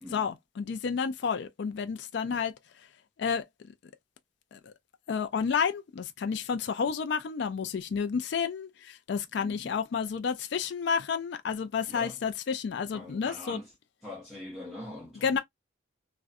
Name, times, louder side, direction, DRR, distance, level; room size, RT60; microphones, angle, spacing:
voice 1, 0.1-2.9 3.2-3.5 4.5-4.7 5.1-13.6 15.1-15.4, left 6 dB, 65° left, 0.3 m, -31 dB
voice 2, 9.4-9.7 11.9-12.2 12.9-13.7 14.0-15.4, left 1 dB, ahead, 0.7 m, -43 dB
2.4 x 2.1 x 2.4 m
head